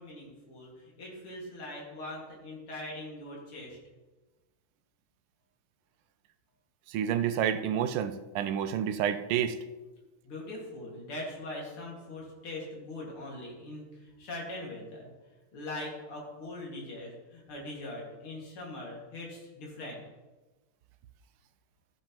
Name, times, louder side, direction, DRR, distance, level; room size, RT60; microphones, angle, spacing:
voice 1, 0.0-3.8 10.2-15.1 15.5-20.0, left 1 dB, 85° left, -3 dB, 3.0 m, -41 dB
voice 2, 6.9-9.6, right 9 dB, 85° right, 10 dB, 1.5 m, -29 dB
13.0 x 8.0 x 3.0 m, 1.2 s
omnidirectional pair, 2.3 m